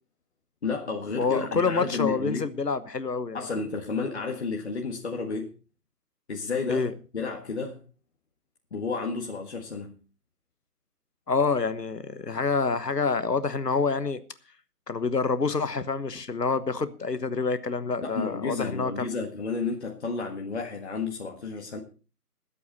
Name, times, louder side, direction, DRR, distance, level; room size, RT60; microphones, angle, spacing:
voice 1, 0.6-2.5 3.3-5.5 6.3-6.9 7.1-7.8 8.7-10.0 18.0-21.8, left 4 dB, 45° left, 1.7 m, -31 dB
voice 2, 1.2-3.4 6.7-6.9 11.3-14.2 14.9-19.1, left 4 dB, 85° left, 1.2 m, -27 dB
21.0 x 8.5 x 4.1 m
figure-of-eight pair, 150°, 47 cm